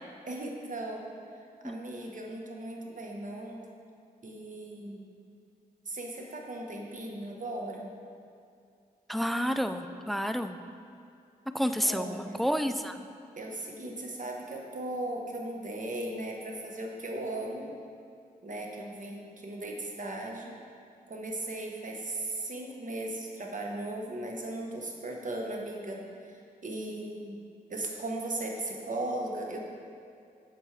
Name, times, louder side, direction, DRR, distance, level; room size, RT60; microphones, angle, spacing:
voice 1, 0.3-1.1 1.6-3.6 4.2-5.1 5.8-7.9 11.8-12.5 13.3-17.7 18.4-20.5 21.1-27.4 27.7-29.6, right 1 dB, 50° right, 0 dB, 1.2 m, -37 dB
voice 2, 9.1-10.6 11.5-13.0, equal, ahead, 9 dB, 0.4 m, -30 dB
7.3 x 7.3 x 3.3 m, 2.4 s
cardioid pair, 50°, 17 cm